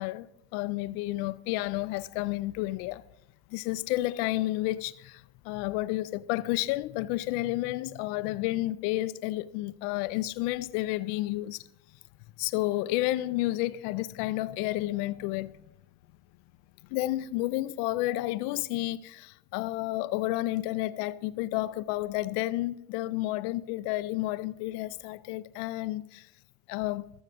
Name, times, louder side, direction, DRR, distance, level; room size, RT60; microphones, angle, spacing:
voice 1, 0.0-3.0 3.5-11.6 12.4-15.5 16.9-26.3 26.7-27.1, left 17 dB, 75° left, 0.5 m, -31 dB
19.5 x 7.2 x 2.5 m
hypercardioid pair, 50°, 44 cm